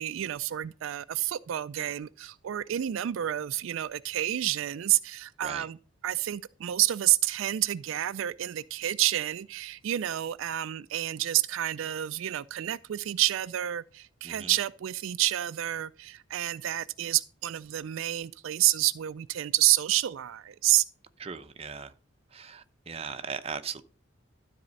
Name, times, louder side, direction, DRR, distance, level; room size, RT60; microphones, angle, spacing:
voice 1, 0.0-5.8 6.0-20.9, right 14 dB, 75° right, 0.3 m, -29 dB
voice 2, 21.2-21.9 22.3-23.8, right 5 dB, 30° right, 0.7 m, -38 dB
12.5 x 4.2 x 6.3 m
head